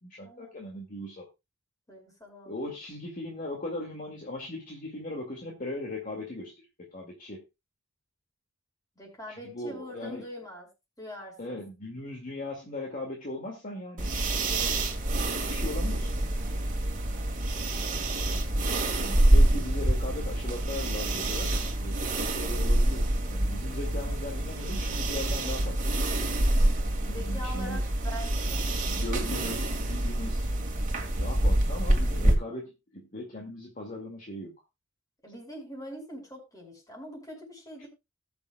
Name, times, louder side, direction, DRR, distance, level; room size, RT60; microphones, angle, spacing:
voice 1, 0.0-1.3 2.5-7.4 9.3-10.2 11.4-14.2 15.3-16.1 19.0-25.8 27.1-27.9 28.8-30.5 31.2-34.5, left 1 dB, 40° left, 0 dB, 2.1 m, -38 dB
voice 2, 1.9-2.7 9.0-10.7 11.0-11.6 18.4-18.6 27.0-28.6 35.2-37.9, equal, 20° left, 1 dB, 5.3 m, -43 dB
sound 1, 14.0-32.3, right 1 dB, 40° right, 2.0 m, -27 dB
19.5 x 7.1 x 2.3 m, 0.24 s
head